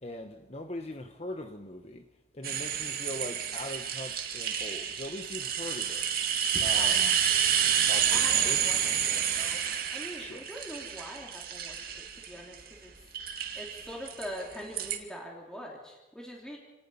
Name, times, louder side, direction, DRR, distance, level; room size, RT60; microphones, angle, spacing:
voice 1, 0.0-2.0 2.3-7.2 7.9-8.6 10.2-10.4, left 1 dB, 35° left, 1.1 m, -41 dB
sound 1, 2.4-12.7 13.1-15.0, right 8 dB, 55° right, 2.3 m, -29 dB
voice 2, 6.7-7.1 8.1-8.8 9.1-11.9 12.3-12.9 13.5-16.6, equal, 5° left, 3.1 m, -43 dB
28.5 x 19.0 x 5.6 m
head